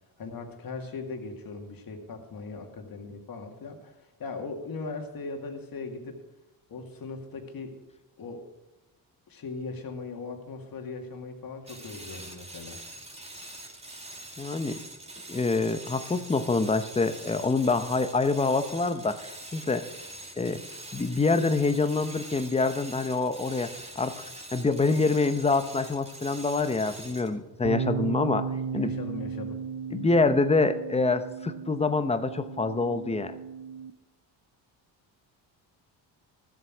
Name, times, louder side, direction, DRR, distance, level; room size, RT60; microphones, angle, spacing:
voice 1, 0.2-6.2 6.7-7.8 8.2-8.4 9.3-12.8 28.8-29.6, left 4 dB, 50° left, 4 dB, 2.3 m, -39 dB
sound 1, 11.7-27.4, right 1 dB, 15° right, 2.1 m, -44 dB
voice 2, 14.4-14.8 15.3-19.9 20.4-20.6 20.9-24.2 24.5-28.4 28.7-28.9 29.9-33.3, left 3 dB, 15° left, 10 dB, 0.9 m, -26 dB
sound 2, 27.6-33.9, right 6 dB, 65° right, 1.1 m, -35 dB
13.0 x 7.8 x 6.1 m, 1.1 s
cardioid pair, 90°, 45 cm